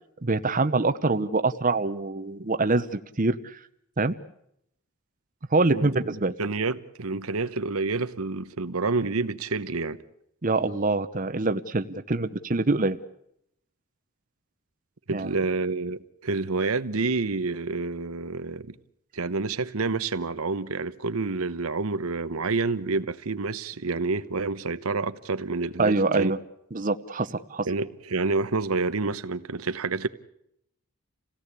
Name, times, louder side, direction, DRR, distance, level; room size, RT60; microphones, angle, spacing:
voice 1, 0.2-3.6 4.0-4.1 5.5-6.3 10.4-13.0 15.1-15.3 25.8-26.4 26.7-27.7, right 3 dB, 40° right, 0.9 m, -25 dB
voice 2, 5.7-10.0 15.1-18.8 19.1-26.3 27.6-30.1, right 3 dB, 85° right, 1.0 m, -28 dB
28.0 x 17.0 x 8.3 m
head